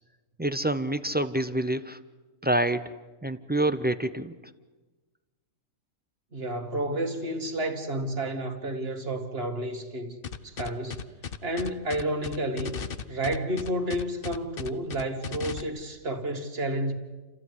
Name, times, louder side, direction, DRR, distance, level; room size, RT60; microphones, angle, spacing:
voice 1, 0.4-2.0 2.4-2.9 3.2-4.4, right 1 dB, 15° right, 0.3 m, -27 dB
voice 2, 6.3-10.2 10.4-11.1 11.4-12.8 13.1-16.9, right 1 dB, 45° right, 2.2 m, -31 dB
sound 1, 10.2-15.6, left 7 dB, 45° left, 0.9 m, -36 dB
30.0 x 14.0 x 9.7 m
omnidirectional pair, 1.5 m